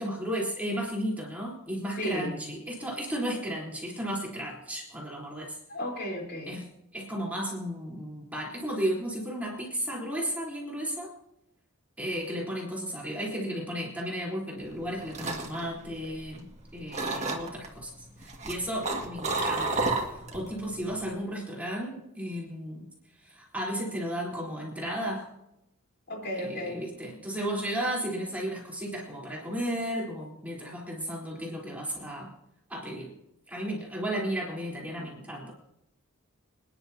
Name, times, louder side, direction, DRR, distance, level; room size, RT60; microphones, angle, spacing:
voice 1, 0.0-5.6 6.5-6.6 6.9-11.1 12.0-17.9 18.2-22.9 23.2-25.3 26.4-32.3 32.7-33.1 33.5-35.5, equal, 5° right, -4 dB, 3.9 m, -34 dB
voice 2, 2.0-2.4 5.7-6.6 20.5-21.2 26.1-26.9, equal, 50° left, 0 dB, 4.0 m, -35 dB
sound 1, 14.7-16.6 16.9-17.7 18.2-20.5 20.8-21.1, right 3 dB, 30° right, 2.0 m, -31 dB
26.5 x 10.5 x 2.8 m, 0.83 s
head